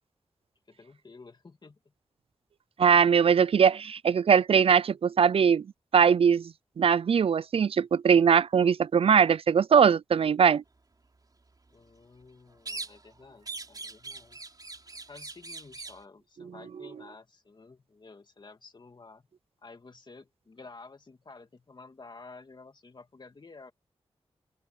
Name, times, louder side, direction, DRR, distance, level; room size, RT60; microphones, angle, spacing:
voice 1, 0.7-1.9 11.7-14.4 15.1-19.2 19.6-23.7, left 3 dB, 45° left, 2.5 m, -51 dB
voice 2, 2.8-5.7 5.9-10.6, right 7 dB, 60° right, 0.4 m, -21 dB
sound 1, 12.7-13.2 13.5-16.0, right 3 dB, 35° right, 4.2 m, -41 dB
wide cardioid pair, 105°, 11 cm